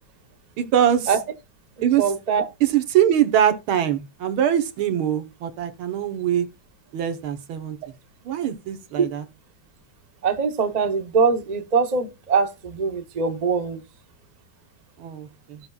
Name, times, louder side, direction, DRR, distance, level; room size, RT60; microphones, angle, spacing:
voice 1, 0.6-1.1 1.8-2.0 2.6-6.5 6.9-7.8 8.3-9.2 15.0-15.6, right 10 dB, 85° right, 1.9 m, -22 dB
voice 2, 2.0-2.5 10.2-13.8, right 5 dB, 50° right, 0.5 m, -22 dB
16.0 x 5.5 x 2.3 m
omnidirectional pair, 2.2 m